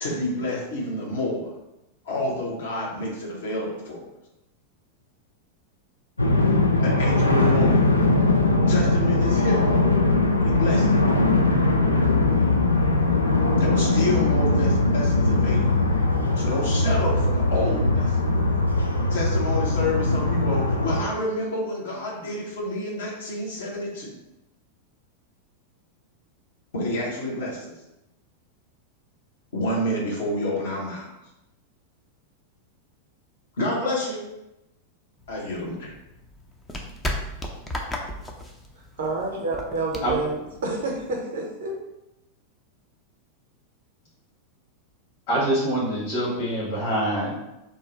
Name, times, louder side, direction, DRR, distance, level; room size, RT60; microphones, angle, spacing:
voice 1, 0.0-1.5 2.0-4.0 6.8-7.9 8.7-9.6 10.4-10.8 13.6-15.7 16.4-18.2 19.1-24.1 26.7-27.7 29.5-31.1 33.6-34.2 35.3-35.9, left 1 dB, 60° left, -3 dB, 0.9 m, -28 dB
sound 1, 6.2-21.0, left 2 dB, 80° left, 0.3 m, -20 dB
sound 2, 35.2-41.2, left 1 dB, 10° left, 0.4 m, -35 dB
voice 2, 39.0-41.7, right 3 dB, 55° right, -1 dB, 0.6 m, -28 dB
voice 3, 45.3-47.4, right 1 dB, 45° left, -8 dB, 1.3 m, -25 dB
2.6 x 2.2 x 3.8 m, 0.92 s
figure-of-eight pair, 90°, 0 cm